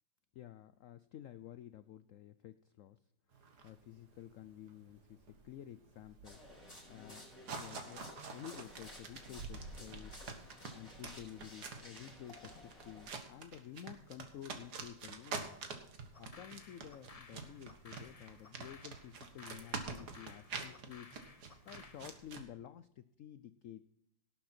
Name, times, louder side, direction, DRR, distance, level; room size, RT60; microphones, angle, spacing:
voice 1, 0.3-3.0 3.6-6.4 6.9-7.3 7.6-10.3 10.7-15.6 16.2-21.1 21.6-23.8, left 11 dB, 90° left, 13 dB, 0.7 m, -52 dB
sound 1, 3.3-22.4, right 4 dB, 60° right, 2.0 m, -47 dB
sound 2, 6.2-13.1, left 1 dB, 20° left, 5.6 m, -55 dB
sound 3, 16.1-22.1, left 4 dB, 35° left, 0.6 m, -57 dB
18.0 x 7.8 x 4.3 m, 0.76 s
omnidirectional pair, 2.0 m